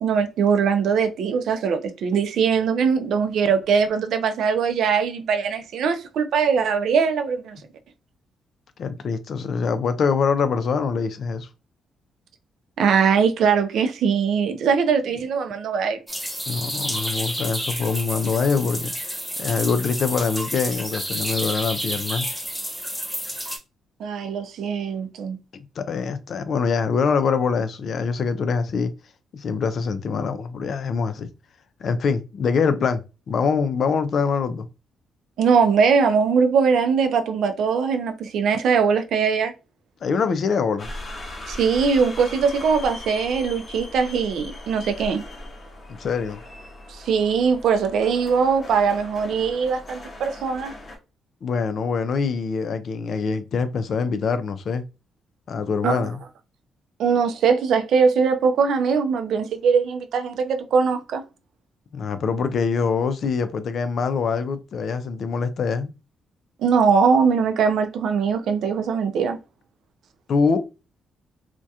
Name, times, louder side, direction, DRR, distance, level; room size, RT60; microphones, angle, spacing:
voice 1, 0.0-7.6 12.8-16.0 24.0-25.4 35.4-39.5 41.5-45.2 46.9-50.7 55.8-56.1 57.0-61.2 66.6-69.4, right 6 dB, 75° right, 0.4 m, -21 dB
voice 2, 8.8-11.5 16.5-18.9 19.4-22.3 25.5-28.9 29.3-31.3 31.8-34.7 40.0-40.9 46.0-46.4 51.4-54.8 55.5-56.2 61.9-65.9 70.3-70.6, left 5 dB, 60° left, 0.4 m, -24 dB
sound 1, 16.1-23.6, equal, ahead, 0.7 m, -30 dB
sound 2, 40.8-51.0, left 1 dB, 40° left, 0.8 m, -39 dB
2.3 x 2.1 x 2.7 m
cardioid pair, 85°, 0 cm